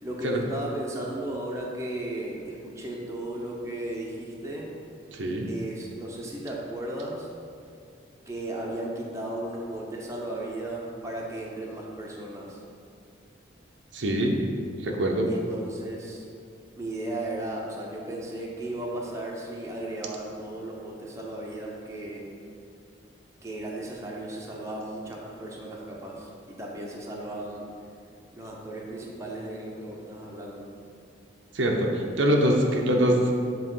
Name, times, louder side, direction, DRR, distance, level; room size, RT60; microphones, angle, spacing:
voice 1, 0.0-4.7 5.5-7.3 8.3-12.6 15.3-16.3 16.8-22.2 23.4-27.7 28.3-30.7, right 1 dB, 15° right, -3 dB, 0.8 m, -35 dB
voice 2, 5.1-5.5 13.9-14.4 14.8-15.3 31.5-33.3, equal, 85° right, 1 dB, 0.8 m, -24 dB
7.6 x 3.1 x 5.4 m, 2.4 s
head